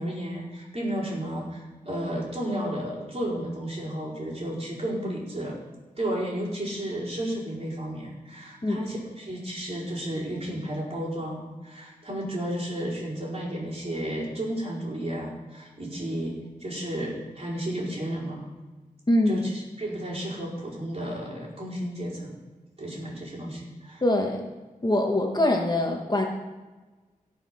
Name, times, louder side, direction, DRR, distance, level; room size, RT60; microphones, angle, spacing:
voice 1, 0.0-5.6 6.0-18.5 19.3-22.4 22.8-24.0, right 1 dB, 45° right, -5 dB, 4.6 m, -33 dB
voice 2, 19.1-19.4 24.0-24.4 24.8-26.3, left 1 dB, 30° left, 1 dB, 1.6 m, -23 dB
17.0 x 5.8 x 5.8 m, 1.2 s
wide cardioid pair, 70°, 15 cm